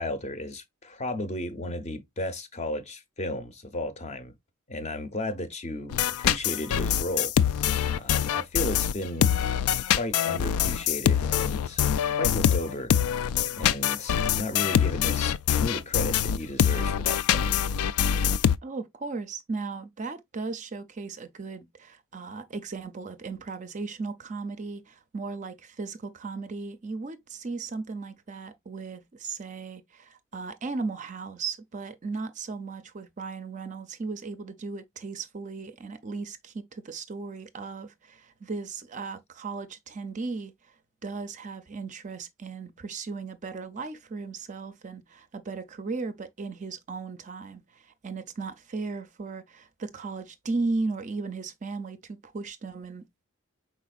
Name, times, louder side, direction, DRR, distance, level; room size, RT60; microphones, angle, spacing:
voice 1, 0.0-4.3 4.7-7.3 7.9-9.3 9.9-11.8 12.1-12.9 13.5-17.5, left 1 dB, 30° left, 0.6 m, -34 dB
sound 1, 5.9-18.6, left 9 dB, 80° left, 0.3 m, -24 dB
voice 2, 18.6-40.5 41.0-53.3, right 4 dB, 35° right, 0.4 m, -36 dB
4.9 x 4.2 x 2.3 m
head